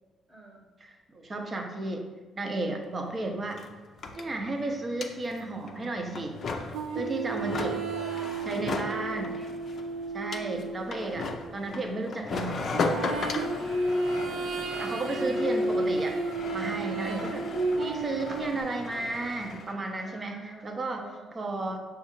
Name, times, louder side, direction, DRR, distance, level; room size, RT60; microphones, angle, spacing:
voice 1, 0.3-0.6 7.4-9.5 10.2-11.6 13.5-14.4 14.8-15.5 16.9-17.4 20.0-21.7, right 1 dB, 5° right, -3 dB, 0.9 m, -48 dB
voice 2, 0.8-2.0 2.3-3.6 4.1-6.4 6.9-7.7 8.5-9.3 10.1-12.8 14.8-16.2 16.5-17.4 17.8-21.0 21.3-21.8, right 2 dB, 35° right, 3 dB, 0.6 m, -33 dB
sound 1, 2.8-2.9 3.1-19.7, left 3 dB, 55° left, 0.4 m, -37 dB
sound 2, 6.7-11.8 12.7-18.6, right 2 dB, 75° right, 0.4 m, -32 dB
5.4 x 2.3 x 3.0 m, 1.3 s
cardioid pair, 85°, 0 cm